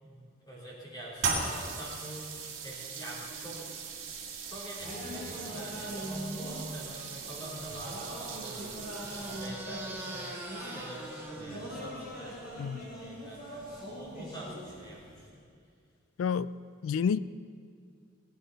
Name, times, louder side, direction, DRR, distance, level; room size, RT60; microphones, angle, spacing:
voice 1, 0.0-2.3 2.6-3.6 4.4-8.6 9.0-15.3, right 1 dB, 20° left, -5 dB, 3.2 m, -45 dB
sound 1, 1.2-9.8, right 5 dB, 70° right, 1.9 m, -38 dB
sound 2, 4.8-15.3, equal, 45° left, 3.8 m, -42 dB
sound 3, 7.8-12.3, right 2 dB, 10° right, 1.2 m, -45 dB
voice 2, 16.2-16.5 16.8-17.2, left 6 dB, 85° left, 17 dB, 0.3 m, -29 dB
18.5 x 9.6 x 4.1 m, 2.2 s
head